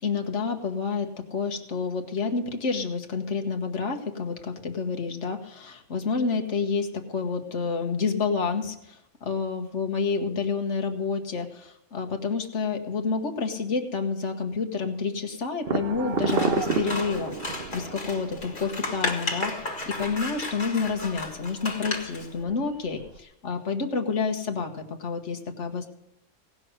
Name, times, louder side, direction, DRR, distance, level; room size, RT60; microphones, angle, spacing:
voice 1, 0.0-9.0 9.3-23.0 23.4-25.9, left 5 dB, 65° left, 4 dB, 1.6 m, -29 dB
sound 1, 15.6-23.2, right 4 dB, 50° right, 1.2 m, -33 dB
Scissors, 16.2-22.3, left 2 dB, 40° left, 1.9 m, -34 dB
17.5 x 6.3 x 7.9 m, 0.81 s
omnidirectional pair, 1.4 m